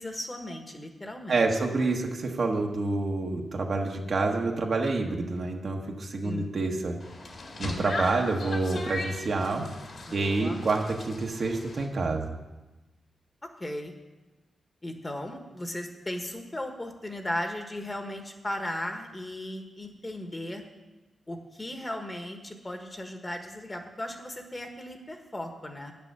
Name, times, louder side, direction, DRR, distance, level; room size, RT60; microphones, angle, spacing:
voice 1, 0.0-1.4 1.8-1.9 6.2-6.5 10.1-10.6 13.6-13.9 14.8-20.6 21.3-25.9, left 1 dB, 20° left, 5 dB, 1.3 m, -36 dB
voice 2, 1.3-6.9 7.6-9.7 10.1-12.3, right 3 dB, 55° right, 2 dB, 1.3 m, -28 dB
sound 1, 7.0-11.9, left 2 dB, 55° left, 2.0 m, -38 dB
9.1 x 6.9 x 6.7 m, 1.1 s
cardioid pair, 90°, 0 cm